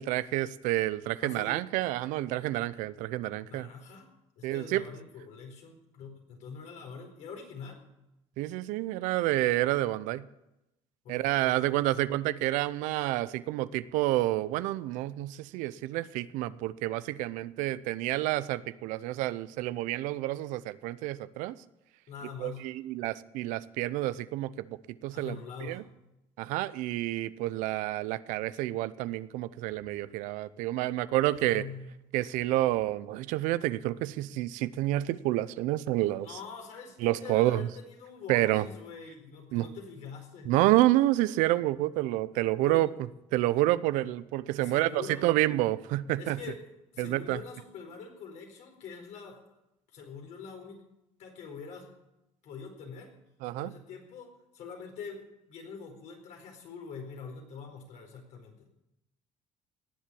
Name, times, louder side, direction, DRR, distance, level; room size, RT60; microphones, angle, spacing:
voice 1, 0.0-3.7 4.4-4.8 8.4-10.2 11.1-21.5 22.4-25.4 25.6-25.8 26.4-31.6 32.1-36.3 37.0-37.7 38.3-38.7 39.5-39.7 40.5-42.9 43.3-46.4 47.0-47.4 53.4-53.7, right 16 dB, 80° right, 16 dB, 0.7 m, -29 dB
voice 2, 1.2-1.6 3.5-4.1 4.4-7.8 11.0-11.7 22.1-22.7 25.1-25.8 31.3-32.0 36.2-40.5 42.6-42.8 44.6-45.4 46.2-46.6 46.9-49.4 49.9-50.8 51.2-51.9 52.4-53.1 53.6-58.7, left 5 dB, 70° left, 3 dB, 4.4 m, -44 dB
18.5 x 7.5 x 8.4 m, 0.90 s
supercardioid pair, 90°, 13 cm